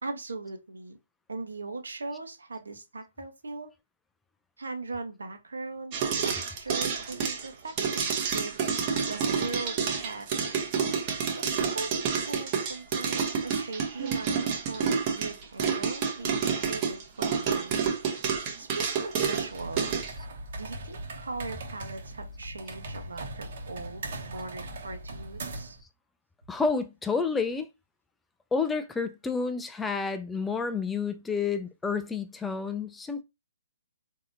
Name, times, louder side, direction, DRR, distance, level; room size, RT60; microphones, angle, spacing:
voice 1, 0.0-1.0 1.3-3.7 4.6-10.7 11.4-18.3 18.6-20.1 20.6-25.8, right 3 dB, 90° right, 1.0 m, -40 dB
sound 1, 5.9-20.1, right 6 dB, 30° right, 0.9 m, -29 dB
sound 2, 19.5-25.8, right 2 dB, 55° right, 1.1 m, -40 dB
voice 2, 26.5-27.7 28.5-33.2, left 5 dB, 10° left, 0.3 m, -30 dB
3.7 x 2.8 x 2.6 m
hypercardioid pair, 150°, 0 cm